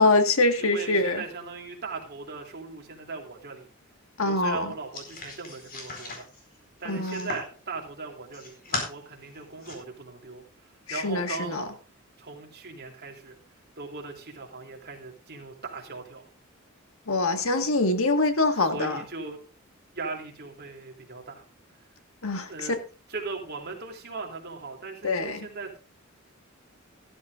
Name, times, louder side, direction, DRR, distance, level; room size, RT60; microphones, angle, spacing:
voice 1, 0.0-1.2 4.2-4.7 6.9-7.3 10.9-11.6 17.1-19.0 22.2-22.5 25.0-25.5, left 2 dB, 70° left, 1.7 m, -24 dB
voice 2, 0.6-3.7 4.2-6.3 6.8-11.7 12.2-13.4 13.8-16.3 18.6-19.4 19.9-21.5 22.5-22.7 23.1-25.8, right 4 dB, 50° right, 3.0 m, -39 dB
sound 1, 4.9-7.5 8.1-8.9 9.3-9.7, left 3 dB, 45° left, 4.4 m, -37 dB
14.0 x 13.5 x 2.6 m
head